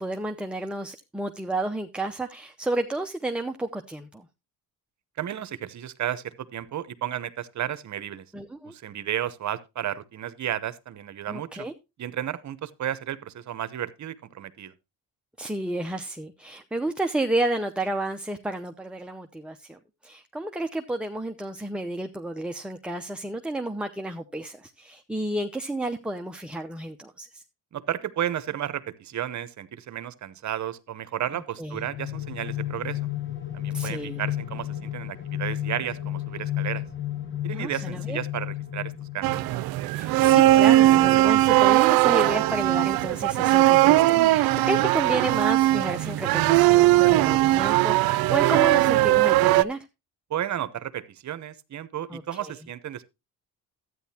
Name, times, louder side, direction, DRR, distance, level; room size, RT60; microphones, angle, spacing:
voice 1, 0.0-4.3 8.3-8.7 11.3-11.7 15.4-27.4 31.3-31.8 33.7-34.2 37.5-38.2 39.9-49.8 52.1-52.5, right 1 dB, 5° right, 0.7 m, -31 dB
voice 2, 5.2-8.2 8.6-11.7 12.0-14.7 27.7-33.0 33.5-36.8 37.4-39.4 50.3-53.0, right 11 dB, 50° right, 0.9 m, -33 dB
sound 1, 31.7-39.6, left 13 dB, 35° left, 1.3 m, -32 dB
sound 2, 39.2-49.6, right 16 dB, 80° right, 0.6 m, -19 dB
12.5 x 9.3 x 2.8 m
cardioid pair, 95°, 36 cm